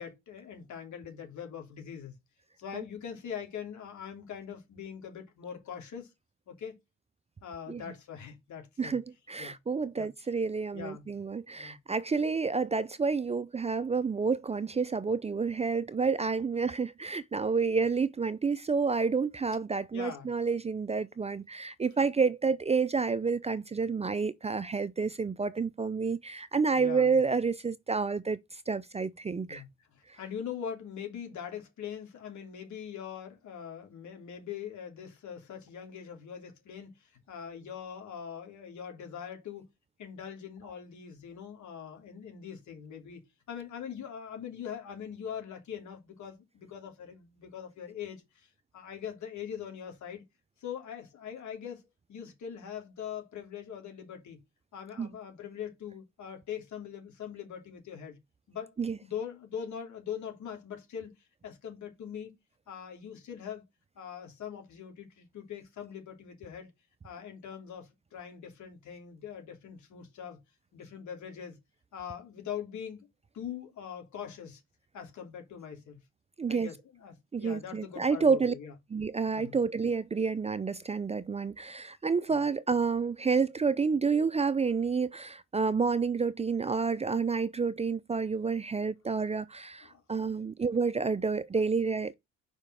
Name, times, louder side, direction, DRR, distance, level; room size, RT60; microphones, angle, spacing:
voice 1, 0.0-2.1 2.6-6.1 6.5-6.8 7.4-9.0 9.4-9.6 9.9-10.1 10.7-11.0 11.6-11.8 19.9-20.3 26.7-27.1 29.5-29.7 29.9-39.6 40.0-43.2 43.5-50.2 50.6-54.4 54.7-58.2 58.5-58.7 59.0-61.1 61.4-62.3 62.7-63.6 64.0-66.7 67.0-70.4 70.7-71.6 71.9-73.1 73.3-74.6 74.9-76.0 76.5-78.7 79.3-79.6 82.3-82.4 89.8-90.0 91.0-91.2, left 8 dB, 70° left, 3.1 m, -42 dB
voice 2, 8.8-29.6 55.0-55.1 58.8-59.0 76.4-76.7 77.3-78.5 78.9-92.1, right 5 dB, 20° right, 0.5 m, -29 dB
5.2 x 5.1 x 6.2 m
cardioid pair, 90°, 30 cm